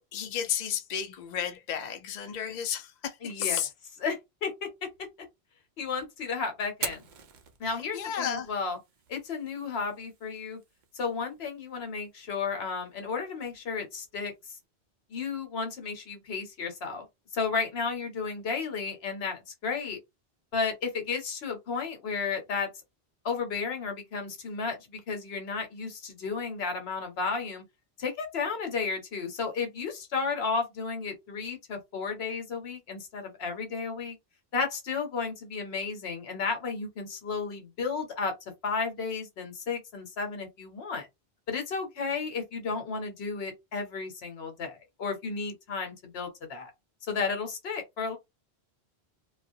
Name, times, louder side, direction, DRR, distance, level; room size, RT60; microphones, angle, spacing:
voice 1, 0.1-3.7 7.9-8.5, left 9 dB, 55° left, 0.5 m, -32 dB
voice 2, 3.2-3.6 4.0-4.9 5.8-7.1 7.6-8.8 9.1-10.6 10.9-14.5 15.1-17.0 17.3-20.0 20.5-22.7 23.2-27.6 28.0-34.2 34.5-38.3 38.6-41.1 41.5-46.7 47.0-48.2, left 5 dB, 70° left, 1.0 m, -33 dB
Fire, 6.7-14.7, right 7 dB, 55° right, 0.6 m, -46 dB
2.4 x 2.0 x 2.6 m
omnidirectional pair, 1.1 m